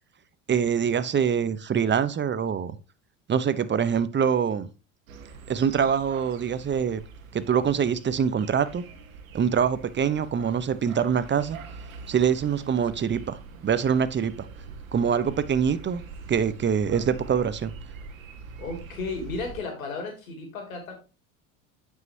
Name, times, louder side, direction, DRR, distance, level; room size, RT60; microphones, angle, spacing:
voice 1, 0.5-2.8 3.3-4.7 5.5-7.0 7.3-8.8 9.3-11.6 12.1-14.5 14.9-16.0 16.3-17.7, right 7 dB, 25° right, 0.9 m, -24 dB
sound 1, 5.1-19.6, right 4 dB, 80° right, 1.5 m, -44 dB
voice 2, 18.6-20.9, left 3 dB, 85° left, 2.9 m, -34 dB
9.1 x 5.7 x 2.8 m
hypercardioid pair, 75°, 40 cm